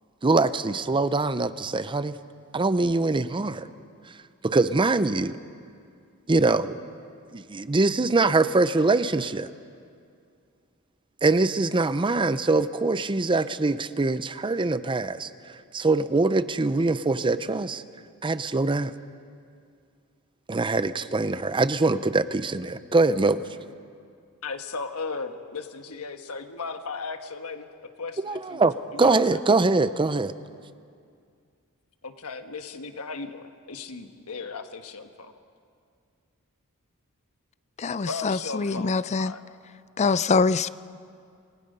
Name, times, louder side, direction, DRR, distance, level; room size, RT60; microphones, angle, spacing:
voice 1, 0.2-2.2 2.5-3.7 4.4-5.4 6.3-6.8 7.3-9.5 11.2-15.3 15.7-17.8 18.2-18.9 20.5-23.4 28.2-30.3, right 3 dB, 20° right, 0.5 m, -23 dB
voice 2, 24.4-27.7 28.0-28.6 28.9-29.4 32.0-35.3 38.1-39.4, left 4 dB, 75° left, 1.3 m, -36 dB
voice 3, 37.8-39.3 40.0-40.7, left 4 dB, 30° left, 0.4 m, -24 dB
27.5 x 20.0 x 5.5 m
head